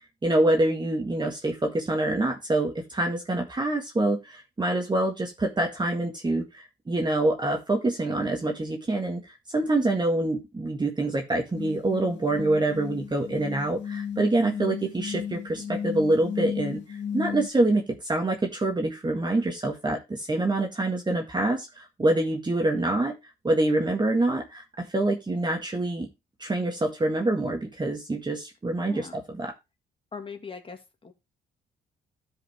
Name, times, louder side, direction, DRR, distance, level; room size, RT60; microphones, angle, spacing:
voice 1, 0.2-23.2 23.4-26.1 26.4-29.5, right 2 dB, 20° right, 2 dB, 1.8 m, -26 dB
sound 1, 11.5-17.5, left 8 dB, 65° left, 1.6 m, -34 dB
voice 2, 28.9-29.2 30.1-31.1, left 5 dB, 25° left, 6 dB, 2.1 m, -40 dB
12.5 x 5.2 x 3.5 m, 0.23 s
cardioid pair, 90°, 20 cm